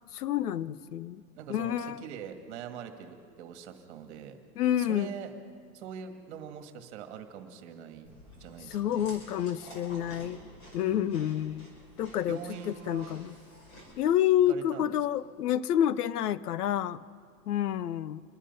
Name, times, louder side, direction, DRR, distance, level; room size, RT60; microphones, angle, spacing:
voice 1, 0.1-1.2 1.5-2.0 4.6-5.1 8.7-10.4 10.7-11.7 12.0-12.4 12.7-13.3 14.0-17.0 17.5-18.2, left 11 dB, 90° left, 18 dB, 0.7 m, -28 dB
voice 2, 1.3-4.4 4.8-5.3 5.7-9.0 10.9-11.3 12.3-13.2 14.5-14.9, right 8 dB, 50° right, 6 dB, 1.8 m, -43 dB
Chewing mastication, 8.0-13.9, equal, 30° left, 5.8 m, -51 dB
26.5 x 10.0 x 5.4 m, 2.1 s
supercardioid pair, 160°, 45 cm